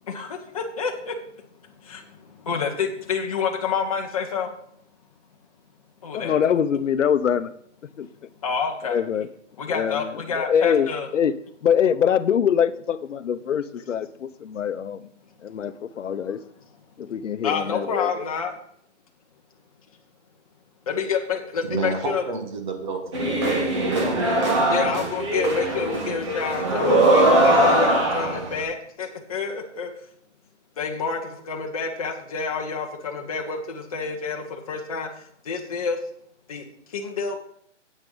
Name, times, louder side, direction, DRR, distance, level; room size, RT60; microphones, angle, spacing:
voice 1, 0.1-1.2 1.6-4.5 6.0-7.1 8.4-9.0 9.6-11.1 13.8-14.1 16.2-16.4 17.4-18.5 20.9-22.3 24.7-29.9 30.8-35.1 35.4-36.0 36.5-37.4, left 5 dB, 30° left, 2 dB, 1.2 m, -29 dB
voice 2, 6.1-7.5 8.0-8.1 8.9-9.3 9.7-11.3 11.6-15.1 15.4-16.4 17.0-18.1, left 8 dB, 80° left, 13 dB, 0.8 m, -24 dB
voice 3, 21.6-23.1 23.8-25.0, right 4 dB, 40° right, 3 dB, 1.7 m, -30 dB
sound 1, 23.1-28.6, right 1 dB, 25° right, 1.3 m, -21 dB
9.2 x 8.3 x 3.9 m, 0.66 s
hypercardioid pair, 175°, 36 cm